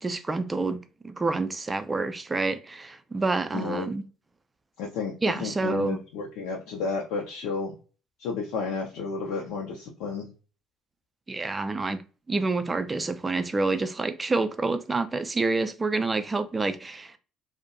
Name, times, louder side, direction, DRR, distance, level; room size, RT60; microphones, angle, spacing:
voice 1, 0.0-4.0 5.2-6.0 11.3-12.0 12.3-17.2, right 3 dB, 20° right, 0.4 m, -28 dB
voice 2, 3.5-3.9 4.8-5.1 5.4-7.7 8.2-10.3, left 4 dB, 65° left, 0.5 m, -32 dB
2.5 x 2.1 x 2.6 m
figure-of-eight pair, 55°, 0 cm